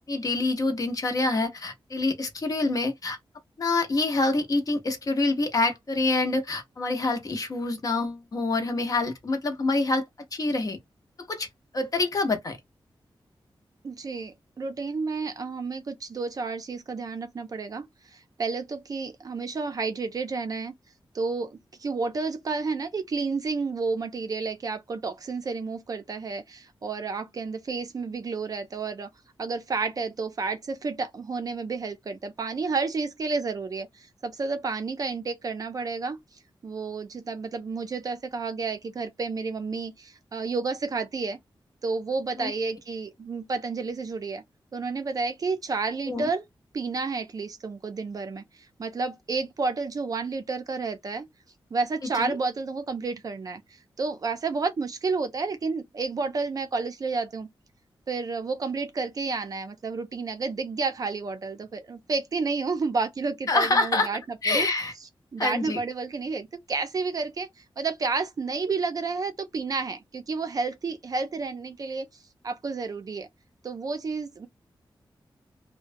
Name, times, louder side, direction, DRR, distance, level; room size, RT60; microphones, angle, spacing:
voice 1, 0.1-3.2 3.6-10.0 10.3-10.8 11.3-11.5 11.7-12.6 42.4-42.5 46.1-46.3 52.1-52.4 63.5-64.1 64.4-64.9 65.4-65.8, left 2 dB, 40° left, 0.7 m, -26 dB
voice 2, 13.8-20.7 21.1-29.1 29.4-36.2 36.6-41.4 41.8-44.4 44.7-46.4 46.7-51.2 51.7-57.5 58.1-64.7 65.3-67.5 67.8-72.1 72.4-73.3 73.6-74.5, right 4 dB, 45° right, 0.4 m, -31 dB
2.9 x 2.1 x 2.5 m
wide cardioid pair, 175°, 9 cm